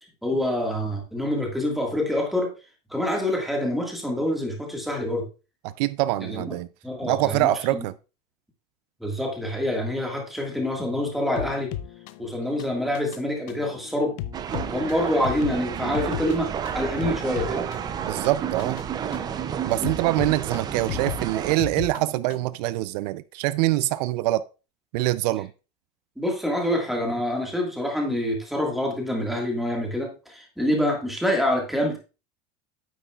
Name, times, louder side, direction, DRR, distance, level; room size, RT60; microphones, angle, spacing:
voice 1, 0.2-2.5 2.9-5.3 6.3-6.6 6.8-7.9 9.0-11.7 12.2-14.2 14.7-17.7 26.2-32.0, left 1 dB, ahead, 1.7 m, -26 dB
voice 2, 5.8-6.7 7.0-7.9 18.0-18.8 19.7-24.4 24.9-25.5, right 17 dB, 80° right, 0.4 m, -24 dB
sound 1, 11.4-22.6, left 12 dB, 60° left, 0.6 m, -37 dB
sound 2, 14.3-21.6, right 9 dB, 20° right, 0.4 m, -31 dB
9.3 x 8.0 x 2.3 m
cardioid pair, 165°, 21 cm